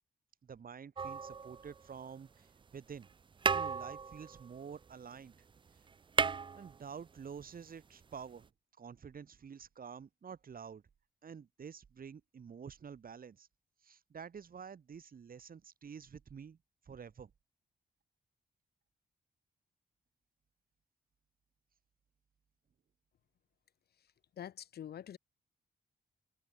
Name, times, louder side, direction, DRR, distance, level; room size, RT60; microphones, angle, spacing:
voice 1, 0.4-3.1 3.5-5.3 6.5-8.5 8.8-10.8 11.2-13.5 13.8-16.6 16.9-17.3, right 6 dB, 60° right, 2.4 m, -49 dB
sound 1, 1.0-2.1 3.0-3.1 3.4-5.3 5.6-5.7 5.9-7.3 8.4-8.5, right 5 dB, 30° right, 0.4 m, -35 dB
voice 2, 24.4-25.2, left 10 dB, 80° left, 1.2 m, -45 dB
cardioid pair, 55°, 16 cm